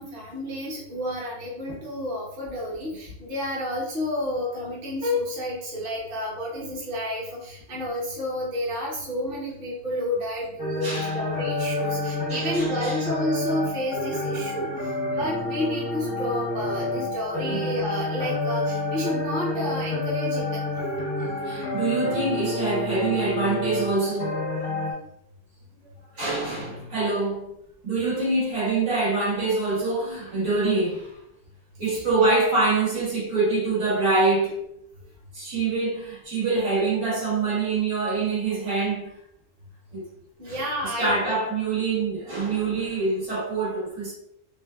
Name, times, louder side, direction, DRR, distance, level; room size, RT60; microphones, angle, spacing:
voice 1, 0.0-14.7 15.2-20.5 31.8-32.0 40.4-41.1, left 1 dB, 45° right, 0.9 m, -30 dB
sound 1, 10.6-24.9, left 2 dB, 15° left, 0.4 m, -29 dB
voice 2, 10.8-11.2 11.8-12.0 12.3-13.0 17.4-17.7 21.4-24.4 26.1-27.5 27.8-31.2 31.8-34.6 35.3-39.1 39.9-40.0 40.4-44.1, right 3 dB, 75° right, 1.8 m, -25 dB
3.3 x 2.4 x 2.3 m
omnidirectional pair, 1.4 m